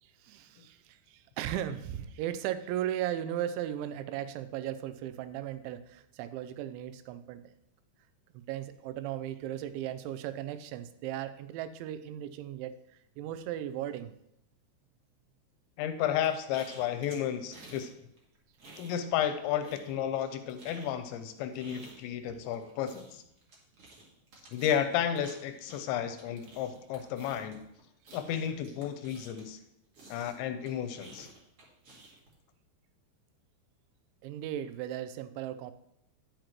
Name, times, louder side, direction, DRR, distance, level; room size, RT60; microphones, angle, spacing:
voice 1, 0.0-7.5 8.3-12.8 13.2-14.1 34.2-35.7, right 11 dB, 85° right, 12 dB, 3.0 m, -37 dB
voice 2, 15.8-17.9 18.8-23.2 24.5-27.6 28.1-29.6 30.1-31.3, left 9 dB, 85° left, 9 dB, 2.9 m, -32 dB
sound 1, 16.2-17.9 18.2-19.3 19.6-29.6 29.9-32.3, right 2 dB, 50° right, 1.8 m, -53 dB
10.0 x 8.9 x 3.0 m, 0.79 s
omnidirectional pair, 5.3 m